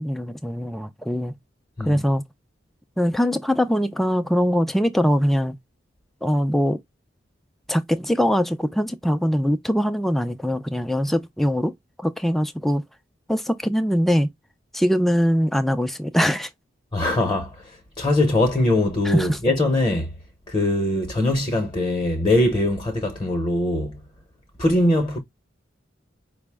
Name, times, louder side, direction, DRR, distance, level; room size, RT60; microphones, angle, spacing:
voice 1, 0.0-1.3 1.8-2.2 3.0-5.6 6.2-6.8 7.7-11.7 12.0-12.8 13.3-14.3 14.7-16.5 19.0-19.4, equal, ahead, 0.4 m, -22 dB
voice 2, 16.9-20.1 20.5-24.0 24.6-25.2, left 1 dB, 25° left, 0.8 m, -22 dB
5.1 x 2.1 x 3.3 m
head